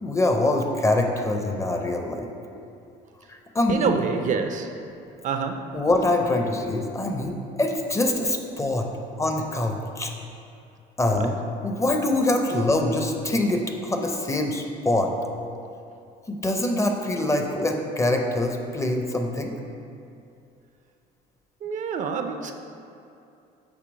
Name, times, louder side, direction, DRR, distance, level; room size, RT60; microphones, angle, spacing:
voice 1, 0.0-2.3 3.3-4.0 5.7-8.9 9.2-10.1 11.0-11.4 11.6-15.1 16.3-19.5, left 1 dB, 15° left, 3 dB, 0.5 m, -24 dB
voice 2, 3.7-4.7 5.2-5.8 11.1-11.3 21.6-22.5, right 6 dB, 50° right, 6 dB, 0.4 m, -27 dB
6.8 x 2.8 x 5.1 m, 2.6 s
cardioid pair, 110°, 17 cm